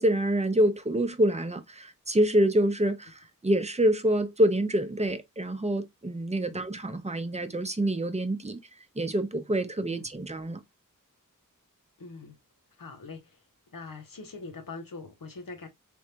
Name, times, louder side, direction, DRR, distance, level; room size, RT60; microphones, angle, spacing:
voice 1, 0.0-8.6 9.0-10.6, right 1 dB, 20° right, 0.7 m, -26 dB
voice 2, 12.0-12.4 12.8-13.4 13.7-15.7, left 3 dB, 85° left, 0.8 m, -43 dB
3.4 x 3.2 x 2.7 m
wide cardioid pair, 50°, 33 cm